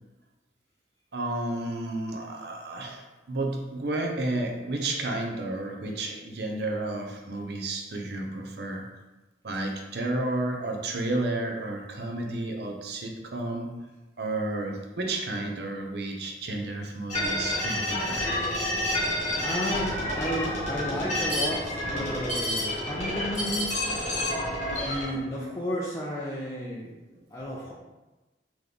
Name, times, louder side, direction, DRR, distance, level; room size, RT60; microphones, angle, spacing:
voice 1, 1.1-8.9 9.4-13.7 14.2-18.4 24.6-24.8 26.8-27.2, right 2 dB, 65° right, 2 dB, 0.6 m, -32 dB
sound 1, 17.1-25.1, left 1 dB, 45° left, 1.4 m, -29 dB
voice 2, 19.4-23.9 24.8-26.9 27.3-27.7, equal, 20° left, -5 dB, 0.4 m, -33 dB
3.8 x 3.0 x 3.4 m, 1.1 s
head